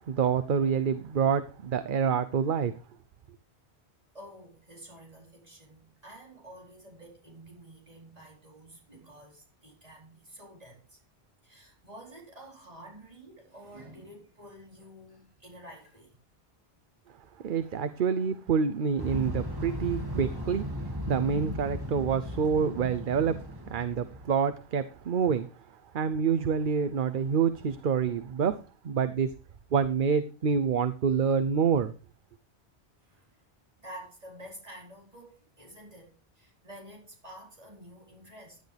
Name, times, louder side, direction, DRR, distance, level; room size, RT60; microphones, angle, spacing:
voice 1, 0.1-2.7 17.4-20.6 21.1-23.4 23.7-25.5 25.9-28.5 28.8-29.3 29.7-31.9, right 6 dB, 55° right, 0.8 m, -27 dB
voice 2, 4.1-11.0 11.4-16.2 33.0-33.4 33.8-38.6, right 1 dB, 35° right, 4.5 m, -49 dB
sound 1, 19.0-24.3, equal, 20° right, 2.3 m, -36 dB
15.5 x 10.5 x 3.4 m
omnidirectional pair, 1.1 m